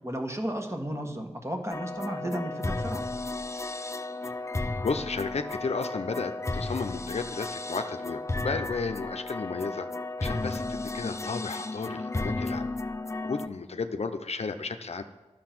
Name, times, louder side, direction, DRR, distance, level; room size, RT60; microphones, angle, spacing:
voice 1, 0.0-3.0, right 1 dB, 25° right, 3 dB, 1.6 m, -33 dB
sound 1, 1.7-13.5, left 2 dB, 25° left, 0.5 m, -34 dB
voice 2, 4.8-12.7 13.2-15.0, left 4 dB, 65° left, 8 dB, 0.7 m, -33 dB
11.5 x 6.8 x 6.0 m, 1.2 s
cardioid pair, 40°, 12 cm